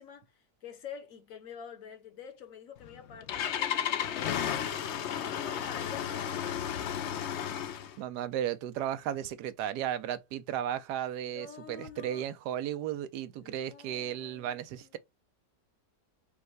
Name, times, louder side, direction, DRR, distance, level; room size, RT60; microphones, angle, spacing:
voice 1, 0.0-4.7 5.1-6.8 11.3-12.3 13.4-15.0, left 7 dB, 55° left, 1.1 m, -47 dB
Engine starting, 2.8-8.0, left 9 dB, 85° left, 0.6 m, -33 dB
voice 2, 8.0-15.0, right 10 dB, 75° right, 1.2 m, -35 dB
5.4 x 2.2 x 4.5 m
omnidirectional pair, 1.9 m